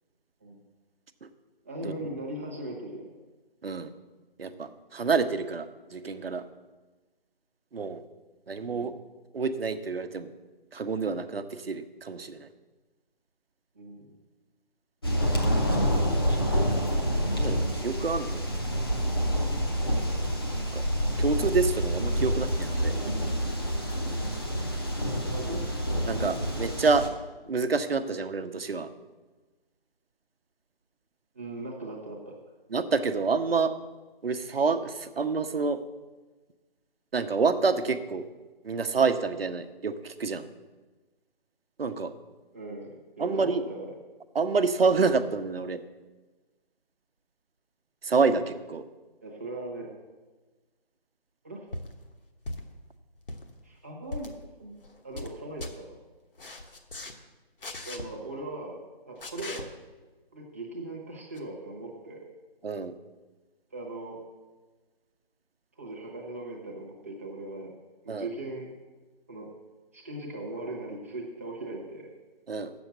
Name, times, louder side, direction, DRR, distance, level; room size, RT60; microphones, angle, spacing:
voice 1, 1.6-3.1 8.6-8.9 13.7-14.1 22.2-22.3 22.7-23.4 25.3-25.6 31.3-32.3 42.5-44.0 49.2-49.9 51.4-51.7 53.6-54.3 54.6-54.7 55.0-55.9 57.8-58.8 59.1-59.8 60.3-62.2 63.7-64.2 65.8-67.7 68.0-68.7 69.3-69.5 69.9-72.1, right 2 dB, 15° right, -2 dB, 0.9 m, -39 dB
voice 2, 4.4-6.4 7.7-8.0 8.5-8.9 9.3-10.3 10.7-12.5 16.5-16.8 17.3-18.4 20.7-20.8 21.2-22.9 26.1-27.1 27.5-28.9 32.7-33.7 34.2-35.8 37.1-38.2 38.6-40.5 41.8-42.1 43.2-43.6 44.3-45.8 48.0-48.8 62.6-62.9 68.1-68.3 72.5-72.7, right 4 dB, 70° right, 10 dB, 0.8 m, -28 dB
sound 1, 15.0-27.1, equal, 25° left, 0.7 m, -27 dB
sound 2, 51.7-51.9 52.4-52.8 53.1-53.5 54.1-54.3 54.8-55.3 55.6-55.7 56.4-57.1 57.6-58.0 59.2-59.6 61.3-61.4, left 2 dB, 60° left, 1.2 m, -38 dB
7.1 x 6.9 x 8.1 m, 1.3 s
figure-of-eight pair, 170°, 30 cm